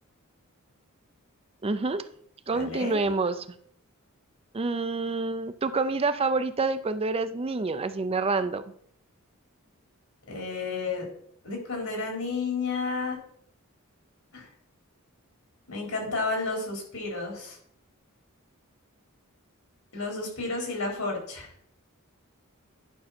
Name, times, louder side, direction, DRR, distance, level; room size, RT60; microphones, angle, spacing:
voice 1, 1.6-2.1 2.5-3.5 4.5-8.6, right 3 dB, 25° right, 11 dB, 0.5 m, -27 dB
voice 2, 2.5-3.0 10.3-11.1 11.4-13.2 14.3-14.5 15.7-17.6 19.9-21.5, left 3 dB, 80° left, 0 dB, 4.4 m, -31 dB
11.0 x 6.3 x 4.3 m, 0.66 s
head